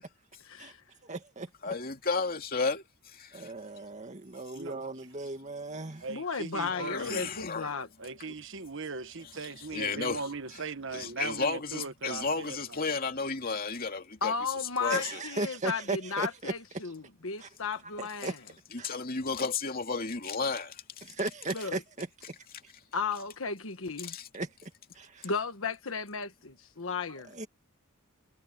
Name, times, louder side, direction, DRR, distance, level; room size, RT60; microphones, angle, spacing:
voice 1, 0.4-0.8 6.1-7.9 14.2-18.4 21.5-21.8 22.9-24.1 25.2-27.4, left 5 dB, 65° left, 1.4 m, -34 dB
voice 2, 1.0-1.7 3.3-6.1 14.9-16.5 17.4-17.5 18.0-18.4 18.8-18.9 21.0-22.1 22.6-22.7 24.3-24.7 25.0-25.3 27.3-27.5, right 2 dB, 35° right, 2.1 m, -37 dB
voice 3, 1.6-3.5 6.7-7.7 9.7-10.3 10.9-14.3 14.8-15.2 18.7-21.0 24.0-24.3, left 4 dB, 40° left, 2.7 m, -33 dB
voice 4, 6.0-7.3 8.0-12.6, right 4 dB, 60° right, 1.3 m, -39 dB
head